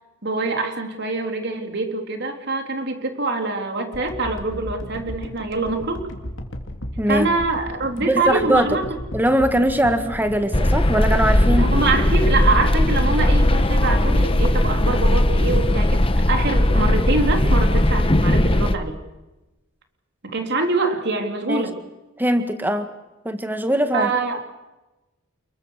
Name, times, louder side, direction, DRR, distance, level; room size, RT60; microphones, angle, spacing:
voice 1, 0.2-6.1 7.1-8.8 11.6-18.9 20.2-21.8 23.9-24.4, right 3 dB, 55° right, 4 dB, 3.7 m, -24 dB
sound 1, 3.9-16.2 16.7-16.8, equal, 60° left, 3.2 m, -35 dB
voice 2, 7.0-7.3 8.1-8.7 9.1-11.7 21.5-21.7 22.2-22.9 23.3-24.1, right 1 dB, 10° right, 8 dB, 1.8 m, -21 dB
sound 2, 10.5-18.8, left 1 dB, 25° left, 1.2 m, -18 dB
29.5 x 22.0 x 6.7 m, 1.1 s
head